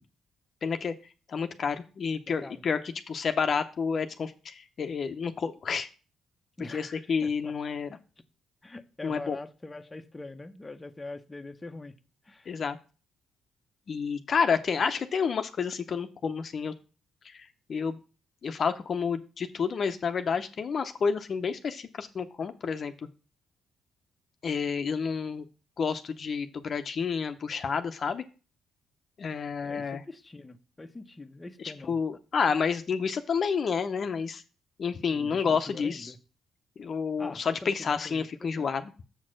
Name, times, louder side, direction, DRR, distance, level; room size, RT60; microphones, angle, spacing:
voice 1, 0.6-0.9 1.3-2.8 3.1-5.9 6.7-8.0 9.0-9.4 12.5-12.8 13.9-16.7 17.2-18.0 18.4-22.9 24.4-25.5 25.8-28.2 29.2-30.0 31.6-34.4 34.8-36.1 36.8-38.9, left 6 dB, 50° left, 0.7 m, -30 dB
voice 2, 6.6-7.5 7.9-8.0 8.6-12.0 12.2-12.6 29.6-32.0 35.1-36.2 37.2-38.7, left 2 dB, 15° left, 0.7 m, -43 dB
7.2 x 4.2 x 6.3 m
cardioid pair, 90°, 0 cm